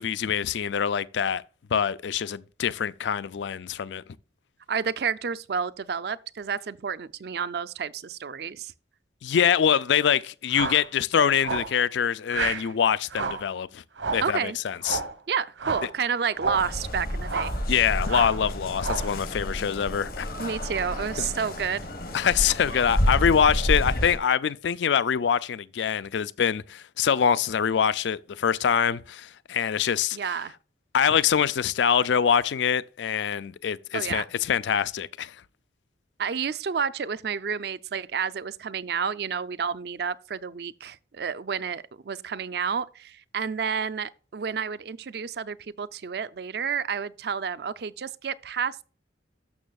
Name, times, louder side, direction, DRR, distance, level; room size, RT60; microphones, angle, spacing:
voice 1, 0.0-1.4 1.7-4.0 9.2-13.8 14.1-15.0 17.7-20.3 22.1-30.2 30.9-35.3, left 7 dB, 75° left, 0.4 m, -24 dB
voice 2, 4.7-8.7 14.2-14.6 15.3-17.5 20.4-21.9 30.1-30.5 33.9-34.3 36.2-48.8, right 6 dB, 60° right, 0.4 m, -30 dB
sound 1, 10.5-10.9 11.4-11.8 12.3-12.7 13.1-13.5 14.0-14.3 14.8-15.2 15.6-15.9 16.3-16.7 17.2-17.6 18.1-18.4 18.8-19.2, right 4 dB, 80° right, 1.0 m, -31 dB
sound 2, 16.5-24.2, equal, 50° left, 1.3 m, -30 dB
13.0 x 6.1 x 2.3 m
head